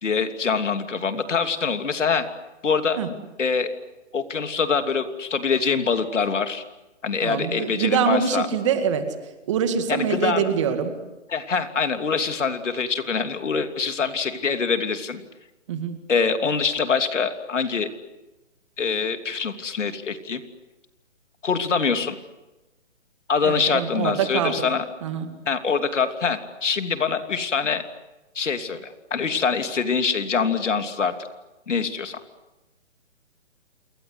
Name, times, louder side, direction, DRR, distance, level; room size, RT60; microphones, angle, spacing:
voice 1, 0.0-2.2 2.6-3.0 3.4-3.7 4.1-6.6 7.0-8.5 9.9-10.5 11.3-15.2 16.1-17.9 18.8-20.4 21.4-22.1 23.3-24.8 25.5-27.8 28.3-31.1 31.7-32.2, left 5 dB, 75° left, 7 dB, 3.1 m, -24 dB
voice 2, 7.2-9.1 9.5-10.9 15.7-16.0 23.4-24.6 25.0-25.3, right 7 dB, 25° right, 7 dB, 2.1 m, -24 dB
28.5 x 23.0 x 8.1 m, 1.1 s
hypercardioid pair, 170°, 37 cm